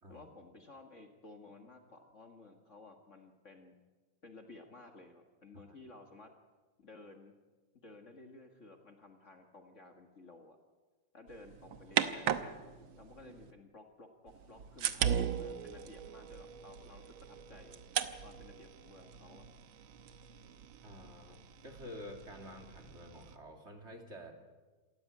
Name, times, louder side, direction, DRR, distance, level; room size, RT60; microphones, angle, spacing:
voice 1, 0.1-3.7 4.2-6.3 6.8-7.4 7.7-10.6 11.1-12.4 13.0-17.8 18.2-19.5, left 2 dB, 40° left, 4 dB, 2.0 m, -55 dB
sound 1, 11.3-13.5 14.3-23.4, right 9 dB, 80° right, 1.8 m, -39 dB
voice 2, 20.8-24.3, equal, 35° right, 3 dB, 2.9 m, -50 dB
27.0 x 14.0 x 8.5 m, 1.3 s
omnidirectional pair, 2.1 m